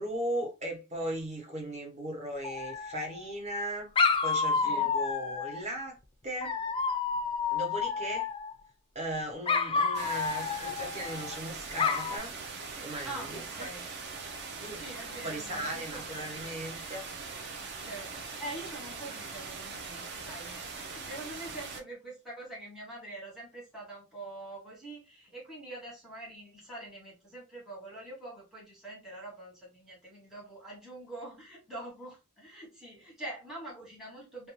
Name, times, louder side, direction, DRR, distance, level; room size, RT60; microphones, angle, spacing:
voice 1, 0.0-3.9 4.2-6.0 6.2-6.6 7.5-8.3 8.9-12.4 12.8-13.7 14.6-14.8 15.2-17.1, right 1 dB, 30° right, 0.9 m, -37 dB
Dog, 2.4-3.3 4.0-5.6 6.4-8.5 9.5-11.4 11.8-12.2, left 5 dB, 25° left, 0.3 m, -30 dB
voice 2, 4.5-4.9 13.0-13.8 14.7-16.6 17.8-34.5, right 2 dB, ahead, 0.8 m, -45 dB
sound 1, 9.9-21.8, right 4 dB, 50° right, 0.5 m, -41 dB
2.5 x 2.2 x 3.0 m
head